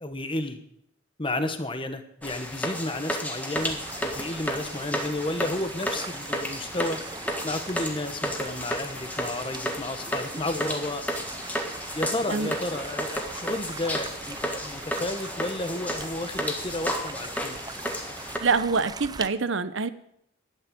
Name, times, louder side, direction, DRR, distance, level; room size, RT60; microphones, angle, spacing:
voice 1, 0.0-0.6 1.2-7.0 7.4-11.0 11.9-17.6, left 2 dB, 25° left, 8 dB, 1.1 m, -32 dB
sound 1, 2.2-18.4, equal, 10° left, 1.6 m, -33 dB
sound 2, 3.6-19.3, right 4 dB, 20° right, 0.6 m, -41 dB
voice 2, 18.4-19.9, right 4 dB, 65° right, 13 dB, 0.8 m, -25 dB
12.0 x 8.9 x 8.6 m, 0.74 s
head